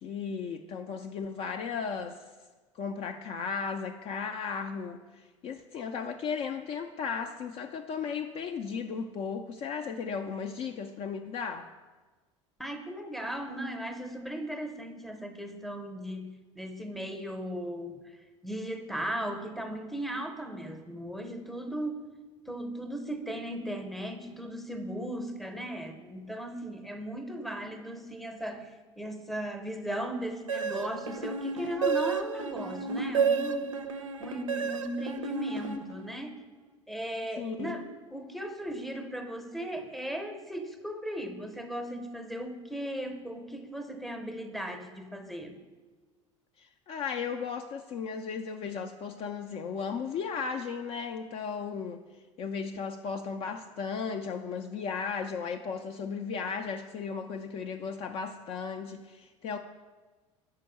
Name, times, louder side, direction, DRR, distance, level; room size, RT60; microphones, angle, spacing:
voice 1, 0.0-2.2 2.7-11.7 37.4-37.7 46.6-52.0 52.4-59.6, left 6 dB, 40° left, 5 dB, 0.4 m, -35 dB
voice 2, 12.6-18.2 18.4-22.0 22.5-33.8 34.2-36.4 36.9-45.6, right 1 dB, ahead, 5 dB, 0.7 m, -37 dB
sound 1, 30.5-36.3, right 5 dB, 80° right, 0.4 m, -31 dB
5.1 x 4.7 x 5.6 m, 1.3 s
figure-of-eight pair, 65°, 16 cm